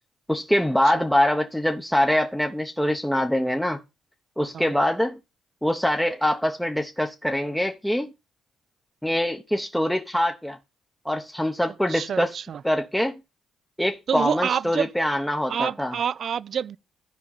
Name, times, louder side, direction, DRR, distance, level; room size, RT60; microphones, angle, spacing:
voice 1, 0.3-3.8 4.4-5.2 5.6-8.1 9.0-10.6 11.0-12.3 12.6-13.2 13.8-15.9, left 1 dB, 5° left, 0.8 m, -24 dB
voice 2, 11.9-12.6 14.1-14.9 15.5-16.8, right 8 dB, 55° right, 0.4 m, -27 dB
12.5 x 5.0 x 4.0 m
cardioid pair, 90°, 0 cm